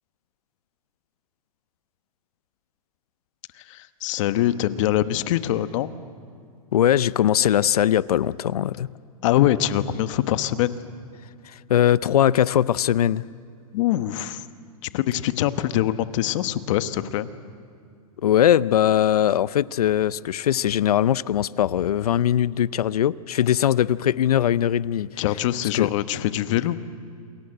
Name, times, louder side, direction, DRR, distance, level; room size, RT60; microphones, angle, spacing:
voice 1, 3.6-5.9 9.2-10.7 13.7-14.4 14.8-17.3 25.2-26.8, left 13 dB, 55° left, 12 dB, 1.2 m, -23 dB
voice 2, 6.7-8.9 11.7-13.2 18.2-25.1 25.7-25.9, left 10 dB, 85° left, 19 dB, 0.6 m, -20 dB
28.0 x 22.0 x 7.9 m, 2.3 s
hypercardioid pair, 130°, 19 cm